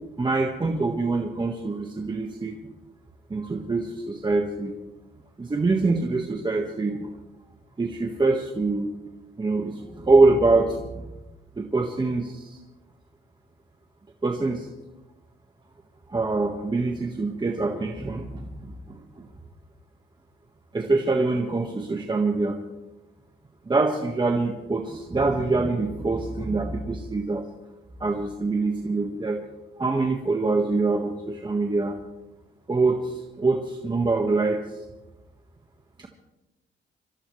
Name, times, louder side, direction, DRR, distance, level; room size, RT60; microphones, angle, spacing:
voice 1, 0.2-2.6 3.3-4.8 5.4-7.1 7.8-8.9 9.4-11.1 11.6-12.6 14.2-14.7 16.1-19.3 20.7-22.6 23.7-27.4 28.0-29.4 29.8-31.9 32.7-34.8 36.0-36.1, right 3 dB, 20° right, 2 dB, 1.5 m, -24 dB
26.5 x 13.5 x 3.2 m, 1.0 s
cardioid pair, 90°, 20 cm